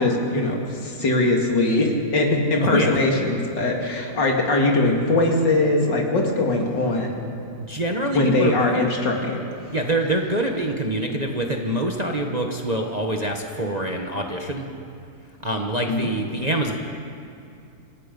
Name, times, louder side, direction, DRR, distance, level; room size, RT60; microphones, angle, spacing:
voice 1, 0.0-7.2 8.1-9.4 15.9-16.1, left 2 dB, 75° left, 0 dB, 3.1 m, -21 dB
voice 2, 2.6-3.0 7.6-8.6 9.7-14.7 15.4-16.7, right 1 dB, 25° right, 2 dB, 1.2 m, -25 dB
27.0 x 18.0 x 5.4 m, 2.6 s
omnidirectional pair, 2.0 m